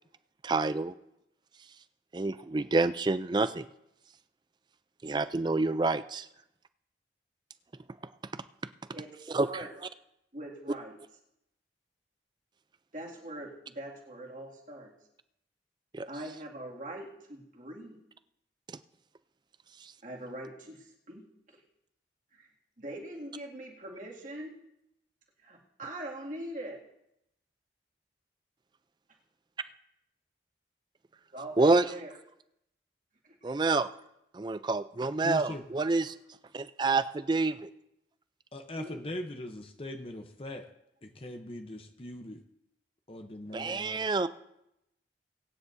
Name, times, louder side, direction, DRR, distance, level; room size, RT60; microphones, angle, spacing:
voice 1, 0.4-0.9 2.1-3.7 5.0-6.3 9.3-9.5 15.9-16.1 18.7-18.8 19.8-19.9 31.6-31.9 33.4-33.9 34.3-36.1 36.5-37.7 43.5-44.3, right 3 dB, 25° right, 14 dB, 0.4 m, -28 dB
voice 2, 8.9-9.7 10.3-11.0 12.9-14.9 16.1-18.0 20.0-21.6 22.3-22.5 22.8-24.5 25.4-26.8 31.3-32.1 33.2-33.4 38.8-39.0, right 1 dB, 45° right, -2 dB, 2.2 m, -42 dB
voice 3, 35.2-35.7 38.5-40.7 41.0-42.4 43.1-44.0, left 1 dB, 30° left, 5 dB, 0.8 m, -40 dB
22.5 x 9.8 x 2.7 m, 0.83 s
head